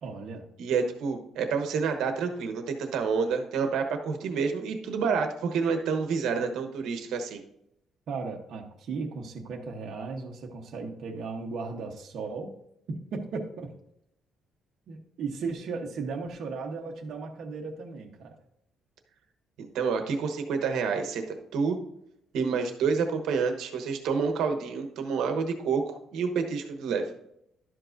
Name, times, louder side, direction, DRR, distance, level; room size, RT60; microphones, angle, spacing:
voice 1, 0.0-0.4 8.1-12.5 12.9-13.7 14.9-18.4, right 4 dB, 50° right, 0 dB, 1.0 m, -36 dB
voice 2, 0.6-7.4 19.6-21.8 22.3-27.1, right 5 dB, 70° right, 6 dB, 1.1 m, -28 dB
11.5 x 7.5 x 2.6 m, 0.76 s
cardioid pair, 170°, 0 cm